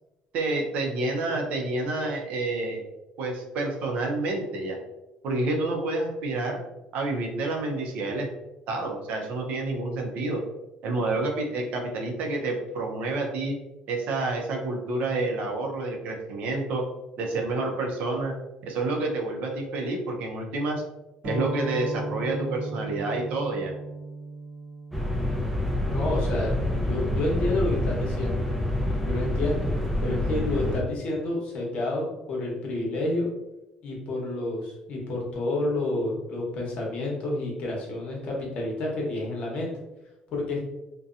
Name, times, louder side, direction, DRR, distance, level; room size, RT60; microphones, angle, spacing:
voice 1, 0.3-2.8 3.2-4.8 5.2-6.6 6.9-8.3 8.7-10.4 10.8-13.6 13.9-16.8 17.2-18.4 18.6-20.8 21.2-23.7, right 2 dB, 70° right, 1 dB, 0.6 m, -29 dB
sound 1, 21.2-26.4, right 2 dB, 50° right, 0.9 m, -36 dB
sound 2, 24.9-30.8, left 1 dB, ahead, 0.4 m, -27 dB
voice 2, 25.9-26.5 26.8-28.4 29.0-29.7 30.0-33.3 33.8-39.7 40.3-40.6, left 2 dB, 55° left, -2 dB, 0.9 m, -29 dB
2.7 x 2.2 x 2.4 m, 0.96 s
cardioid pair, 110°, 3 cm